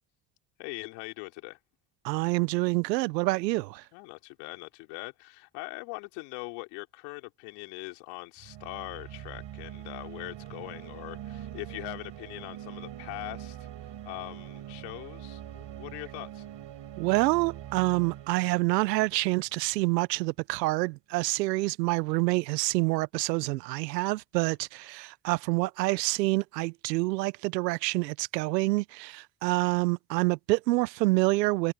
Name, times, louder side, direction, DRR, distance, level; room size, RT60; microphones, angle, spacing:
voice 1, 0.6-1.6 3.9-13.6 14.0-16.4, left 28 dB, 80° left, 3.7 m, -41 dB
voice 2, 2.0-3.8 17.0-31.7, right 21 dB, 90° right, 0.9 m, -27 dB
sound 1, 8.4-19.9, right 11 dB, 65° right, 5.4 m, -43 dB
hypercardioid pair, 50°, 48 cm